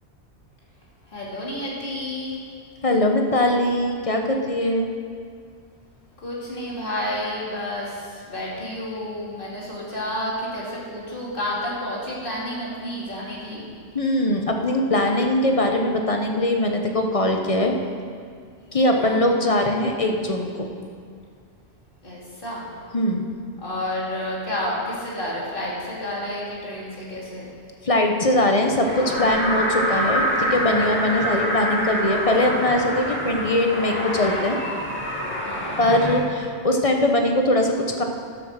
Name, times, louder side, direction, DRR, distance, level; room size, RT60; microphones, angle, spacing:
voice 1, 1.1-2.4 6.2-13.7 18.9-19.2 22.0-22.7 23.6-27.4 28.4-28.5 35.4-35.7, left 1 dB, 50° left, -6 dB, 2.8 m, -30 dB
voice 2, 2.8-4.9 13.9-17.8 18.7-20.7 22.9-23.3 27.8-34.6 35.8-38.0, left 1 dB, 35° left, 3 dB, 1.0 m, -21 dB
sound 1, 28.8-36.2, equal, 10° left, 1.9 m, -26 dB
12.0 x 7.1 x 6.5 m, 2.1 s
omnidirectional pair, 1.2 m